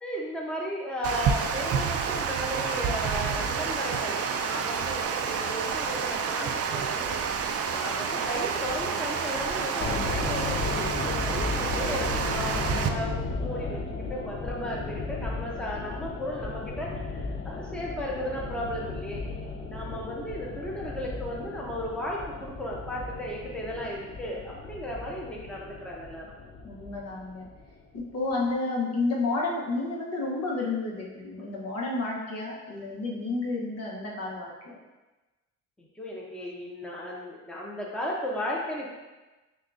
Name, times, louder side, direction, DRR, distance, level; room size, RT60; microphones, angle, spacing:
voice 1, 0.0-26.3 35.8-38.9, equal, 5° left, -4 dB, 0.8 m, -35 dB
Water, 1.0-12.9, right 6 dB, 55° right, 0.4 m, -29 dB
sound 1, 9.8-28.0 28.3-28.4, left 3 dB, 40° left, 0.6 m, -35 dB
voice 2, 26.6-27.5 27.9-34.8, left 3 dB, 55° left, -3 dB, 1.1 m, -31 dB
6.4 x 2.4 x 2.6 m, 1.1 s
cardioid pair, 90°, 30 cm